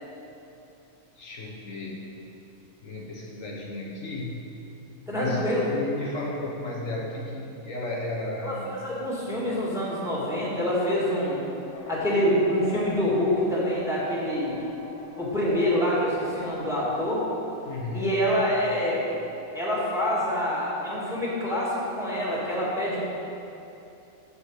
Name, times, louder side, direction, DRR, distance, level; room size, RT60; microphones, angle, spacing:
voice 1, 1.2-2.1 2.8-4.5 5.1-8.8 17.6-18.2, left 2 dB, 65° left, -2 dB, 1.5 m, -34 dB
voice 2, 5.1-5.7 8.4-8.6 8.8-11.4 11.9-14.6 15.2-17.2 17.9-19.1 19.5-23.0, equal, ahead, -6 dB, 2.3 m, -26 dB
sound 1, 11.7-20.8, left 1 dB, 90° left, 2.8 m, -45 dB
8.4 x 7.2 x 6.6 m, 2.9 s
omnidirectional pair, 1.5 m